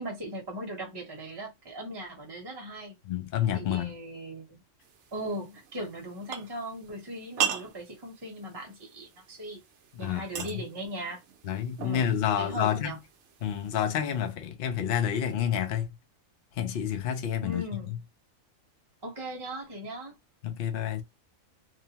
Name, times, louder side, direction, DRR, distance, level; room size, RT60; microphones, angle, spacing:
voice 1, 0.0-3.0 3.5-4.6 5.1-9.6 10.0-11.2 11.8-13.0 17.4-18.0 19.0-20.1, right 1 dB, 25° right, 0.7 m, -38 dB
voice 2, 3.0-4.0 9.9-10.6 11.4-12.9 13.4-15.9 16.6-18.0 20.4-21.0, left 9 dB, 60° left, 0.6 m, -29 dB
sound 1, 4.8-14.3, right 9 dB, 70° right, 0.8 m, -39 dB
2.7 x 2.1 x 2.8 m
omnidirectional pair, 1.4 m